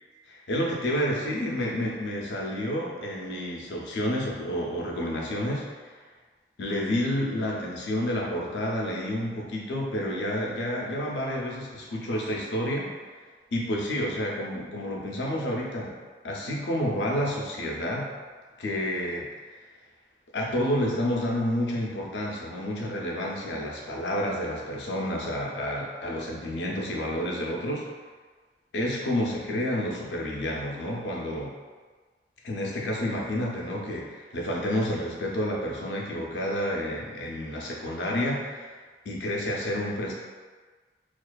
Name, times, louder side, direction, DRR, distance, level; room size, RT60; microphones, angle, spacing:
voice 1, 0.3-5.9 6.6-12.9 13.5-16.0 16.2-18.1 18.6-19.6 20.3-27.8 28.7-31.5 32.4-38.7 39.1-40.1, equal, 80° left, -2 dB, 0.5 m, -29 dB
2.4 x 2.3 x 2.2 m, 1.4 s
head